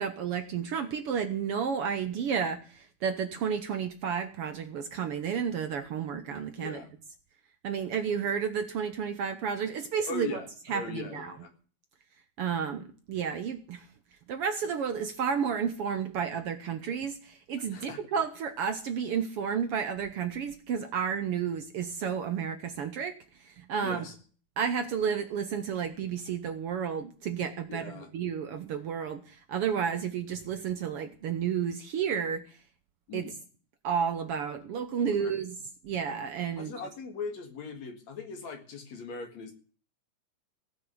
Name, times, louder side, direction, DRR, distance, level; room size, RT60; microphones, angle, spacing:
voice 1, 0.0-6.8 7.6-10.4 10.7-11.3 12.4-13.9 14.3-23.2 23.4-24.1 24.6-32.4 33.1-33.3 33.8-35.6 35.8-36.7, right 7 dB, 65° right, 8 dB, 1.6 m, -31 dB
voice 2, 6.6-6.9 10.1-11.5 17.7-18.0 23.8-24.1 27.7-28.1 33.1-33.4 35.0-35.3 36.6-39.5, left 4 dB, 65° left, 5 dB, 3.3 m, -40 dB
16.5 x 6.1 x 9.4 m, 0.41 s
omnidirectional pair, 3.4 m